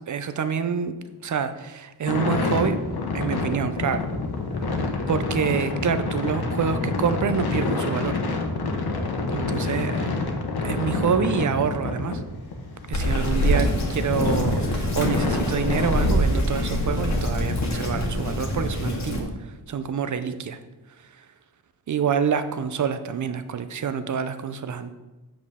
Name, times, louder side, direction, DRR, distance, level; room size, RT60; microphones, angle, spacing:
voice 1, 0.1-0.9 1.2-2.8 3.1-4.1 5.1-8.2 9.3-10.1 10.6-12.2 12.9-19.3 19.7-20.6 21.9-24.9, right 7 dB, 45° right, 11 dB, 0.5 m, -27 dB
sound 1, 2.1-17.7, left 3 dB, 65° left, 1.0 m, -28 dB
Bird vocalization bird call bird song, 12.9-19.2, equal, 40° left, 1.3 m, -25 dB
7.8 x 6.4 x 3.6 m, 1.1 s
wide cardioid pair, 160°, 41 cm